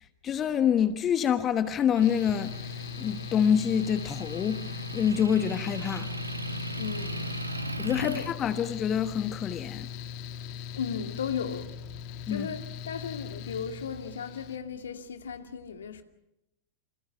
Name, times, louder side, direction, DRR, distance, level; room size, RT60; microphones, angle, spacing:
voice 1, 0.2-6.1 7.8-9.9 12.3-12.5, left 8 dB, 25° left, 1.2 m, -27 dB
Mechanical fan, 2.0-14.6, left 8 dB, 45° left, 1.7 m, -40 dB
Motor vehicle (road) / Engine, 2.0-8.3, right 1 dB, 80° right, 1.2 m, -38 dB
voice 2, 6.8-7.4 7.8-8.3 10.8-12.0 12.3-16.0, left 7 dB, 65° left, 2.3 m, -36 dB
28.0 x 26.0 x 5.7 m
figure-of-eight pair, 90°, 0 cm